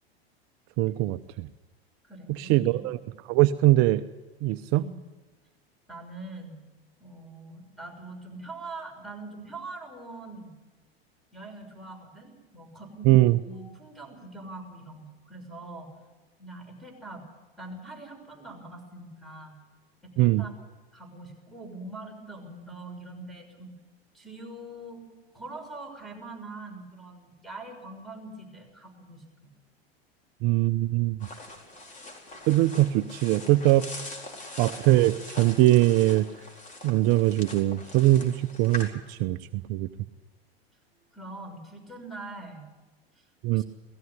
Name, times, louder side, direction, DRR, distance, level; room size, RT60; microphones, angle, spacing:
voice 1, 0.8-1.5 2.3-3.0 3.3-4.0 4.4-4.9 13.0-13.4 20.2-20.4 30.4-31.3 32.5-33.9 34.6-36.3 36.8-39.9 43.4-43.6, right 16 dB, 50° right, 10 dB, 0.8 m, -22 dB
voice 2, 2.0-2.8 4.7-5.0 5.9-6.6 7.0-10.6 11.3-15.9 16.4-17.2 17.6-19.5 20.0-20.5 20.9-23.7 24.1-25.0 25.3-29.5 41.1-42.7 43.5-43.6, right 2 dB, ahead, 4 dB, 6.7 m, -43 dB
sound 1, 31.2-38.9, left 2 dB, 25° left, 4.5 m, -42 dB
18.5 x 15.5 x 9.6 m, 1.2 s
hypercardioid pair, 105°, 31 cm